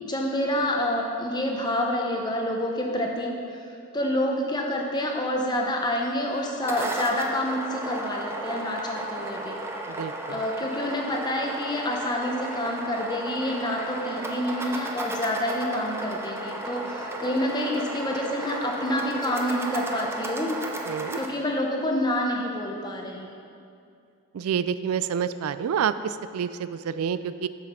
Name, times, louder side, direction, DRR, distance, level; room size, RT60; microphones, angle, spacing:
voice 1, 0.0-3.6 3.9-9.6 10.3-20.6 21.1-23.3, left 1 dB, 20° left, 1 dB, 0.8 m, -28 dB
sound 1, 6.4-21.3, right 2 dB, 10° right, 0.5 m, -34 dB
voice 2, 9.9-10.4 20.9-21.2 24.3-27.5, right 7 dB, 85° right, 13 dB, 0.3 m, -28 dB
7.4 x 6.3 x 5.6 m, 2.5 s
head